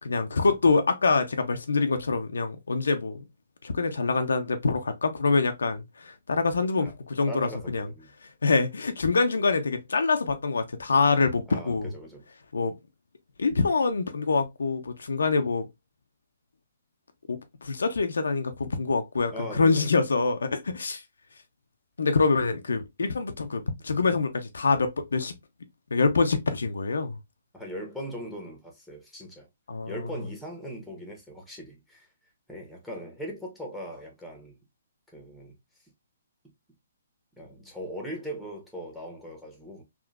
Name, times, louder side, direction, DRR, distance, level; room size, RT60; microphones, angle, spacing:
voice 1, 0.0-3.2 3.6-7.9 8.4-11.9 12.5-12.7 13.4-15.7 17.3-21.0 22.0-25.3 25.9-27.2 29.7-30.0, left 4 dB, 80° left, 0.5 m, -25 dB
voice 2, 7.3-8.1 11.5-12.2 19.3-20.1 23.0-23.1 27.5-29.5 29.9-32.1 32.5-34.6 35.1-35.5 37.4-39.8, equal, ahead, 1.1 m, -39 dB
3.6 x 2.5 x 2.3 m
hypercardioid pair, 140°, 0 cm